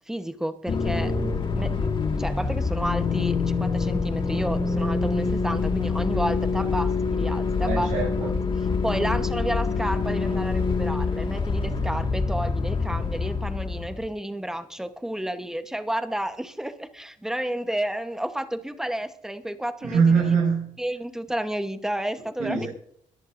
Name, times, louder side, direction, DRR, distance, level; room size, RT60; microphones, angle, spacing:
voice 1, 0.1-1.1 1.5-1.9 2.2-8.2 8.8-20.0 20.8-22.7, right 1 dB, 5° right, 8 dB, 1.0 m, -31 dB
sound 1, 0.7-14.1, left 4 dB, 35° left, 1.8 m, -26 dB
voice 2, 7.6-8.3 19.8-20.8 22.4-22.7, right 5 dB, 65° right, -3 dB, 6.4 m, -23 dB
22.0 x 14.0 x 2.6 m, 0.68 s
cardioid pair, 140°, 14 cm